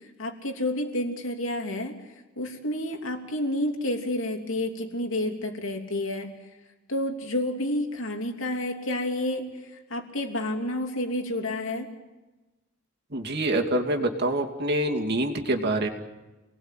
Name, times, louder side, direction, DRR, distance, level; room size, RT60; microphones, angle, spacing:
voice 1, 0.2-1.9 2.4-6.3 6.9-9.4 9.9-11.9, left 1 dB, 70° left, 4 dB, 3.2 m, -29 dB
voice 2, 13.1-15.9, right 1 dB, 55° right, 2 dB, 2.7 m, -26 dB
29.5 x 19.5 x 9.2 m, 1.1 s
head